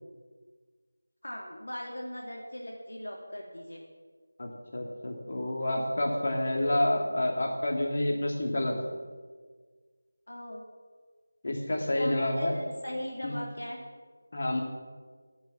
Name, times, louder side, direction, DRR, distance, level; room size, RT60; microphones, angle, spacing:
voice 1, 1.2-3.8 10.3-10.6 11.9-13.8, left 1 dB, 60° left, 0 dB, 2.4 m, -38 dB
voice 2, 4.4-8.7 11.4-12.5 13.2-13.3 14.3-14.6, left 1 dB, 45° left, 0 dB, 3.0 m, -29 dB
17.0 x 9.5 x 7.2 m, 1.5 s
figure-of-eight pair, 165°, 0 cm